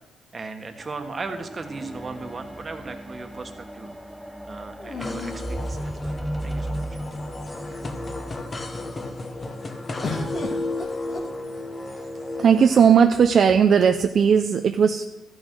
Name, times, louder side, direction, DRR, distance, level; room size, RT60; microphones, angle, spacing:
voice 1, 0.3-3.9 4.4-7.0, right 3 dB, 35° right, 6 dB, 1.4 m, -37 dB
sound 1, 0.8-10.3 11.1-11.2, right 1 dB, ahead, 0.4 m, -36 dB
sound 2, 1.7-2.8 4.8-6.3 7.1-7.2 7.5-8.1 10.0-11.9 12.8-13.5, left 3 dB, 55° left, 2.3 m, -37 dB
sound 3, 5.0-12.9, left 2 dB, 30° left, 1.2 m, -34 dB
voice 2, 12.4-15.0, right 7 dB, 55° right, 7 dB, 0.5 m, -17 dB
13.5 x 6.4 x 6.2 m, 1.0 s
cardioid pair, 90°, 0 cm